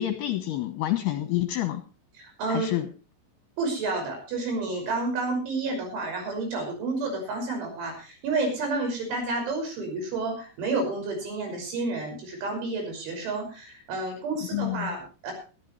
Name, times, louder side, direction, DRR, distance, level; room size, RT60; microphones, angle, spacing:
voice 1, 0.0-1.8 2.5-2.9 14.5-15.0, left 14 dB, 70° left, 8 dB, 2.6 m, -28 dB
voice 2, 2.2-2.7 3.6-15.3, right 3 dB, 70° right, 3 dB, 8.1 m, -30 dB
19.5 x 13.0 x 3.1 m, 0.34 s
omnidirectional pair, 5.6 m